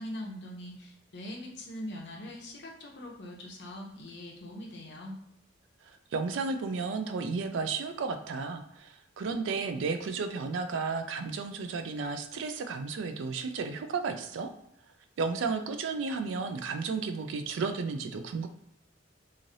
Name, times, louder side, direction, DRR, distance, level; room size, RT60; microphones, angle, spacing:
voice 1, 0.0-5.2, left 1 dB, 60° left, -1 dB, 0.7 m, -42 dB
voice 2, 6.1-14.5 15.2-18.5, right 4 dB, 75° right, 7 dB, 0.3 m, -33 dB
3.1 x 2.5 x 2.6 m, 0.80 s
head